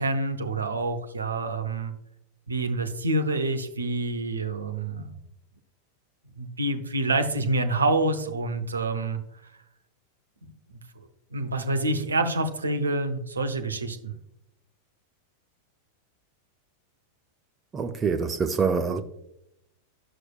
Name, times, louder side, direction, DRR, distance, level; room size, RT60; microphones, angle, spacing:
voice 1, 0.0-1.9 2.5-5.1 6.4-9.2 10.4-10.5 11.3-14.1, right 2 dB, 75° right, 0.7 m, -27 dB
voice 2, 17.7-19.0, right 5 dB, 20° right, 0.5 m, -25 dB
11.0 x 6.2 x 2.4 m
figure-of-eight pair, 90°, 0 cm